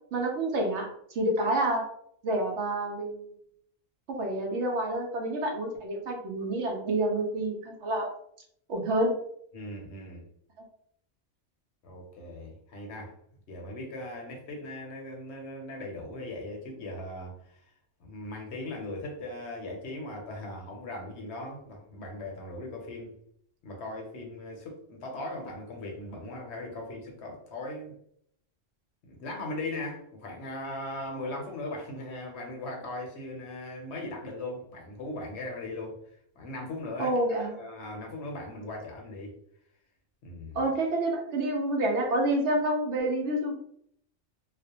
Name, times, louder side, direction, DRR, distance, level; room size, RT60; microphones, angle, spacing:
voice 1, 0.1-1.9 2.2-3.2 4.1-8.1 8.7-9.1 37.0-37.5 40.5-43.5, right 1 dB, 70° right, 1 dB, 0.9 m, -28 dB
voice 2, 9.5-10.2 11.8-13.1 13.5-17.6 18.0-23.1 23.6-27.9 29.0-36.0 36.4-39.3 40.2-40.7, left 2 dB, 65° left, 0 dB, 0.9 m, -39 dB
2.4 x 2.1 x 2.7 m, 0.69 s
omnidirectional pair, 1.3 m